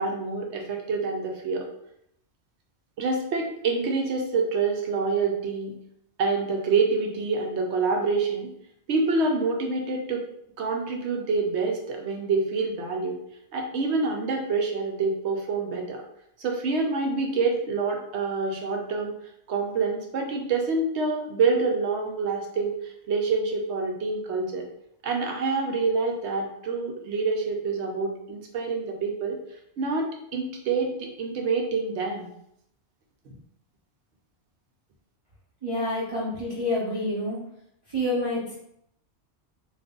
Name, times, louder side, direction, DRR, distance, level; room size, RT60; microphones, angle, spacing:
voice 1, 0.0-1.6 3.0-5.7 6.2-8.5 8.9-10.2 10.6-13.2 13.5-16.0 16.4-19.1 19.5-24.6 25.0-29.4 29.8-32.3, right 4 dB, 70° right, 1 dB, 0.9 m, -27 dB
voice 2, 35.6-37.4 37.9-38.5, left 1 dB, 35° right, -9 dB, 0.7 m, -28 dB
2.5 x 2.4 x 3.6 m, 0.74 s
omnidirectional pair, 1.2 m